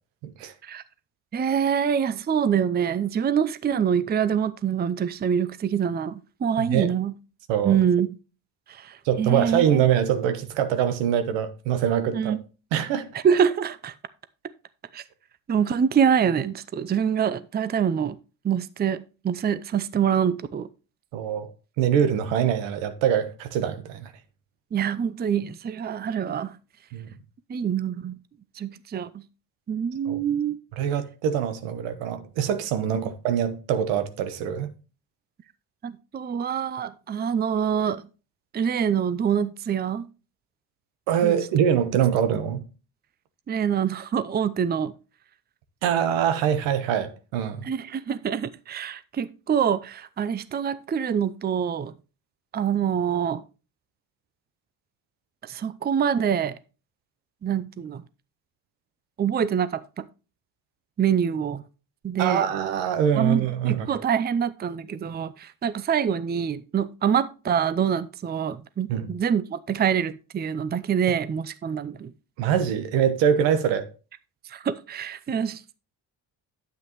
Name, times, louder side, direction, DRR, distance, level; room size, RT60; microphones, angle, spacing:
voice 1, 1.3-7.1 7.6-8.1 8.7-9.8 12.1-12.4 13.2-13.9 14.9-15.0 15.5-18.2 18.4-20.7 24.7-26.6 27.5-28.2 28.6-29.1 29.7-30.6 35.8-38.0 38.5-40.1 41.2-41.3 43.5-44.9 47.7-51.9 52.5-53.4 55.4-56.5 57.4-58.0 59.2-60.0 61.0-61.6 62.0-62.5 63.2-72.1 74.5-75.6, right 8 dB, 25° right, 0.5 m, -25 dB
voice 2, 6.6-6.9 7.5-7.8 9.0-12.3 12.7-13.1 21.1-21.5 21.8-24.1 26.9-27.1 30.1-30.2 30.7-34.7 41.1-42.6 45.8-47.7 62.2-63.9 68.9-69.1 72.4-73.9, right 9 dB, 85° right, 1.1 m, -24 dB
9.4 x 8.0 x 3.0 m
supercardioid pair, 80°, 43 cm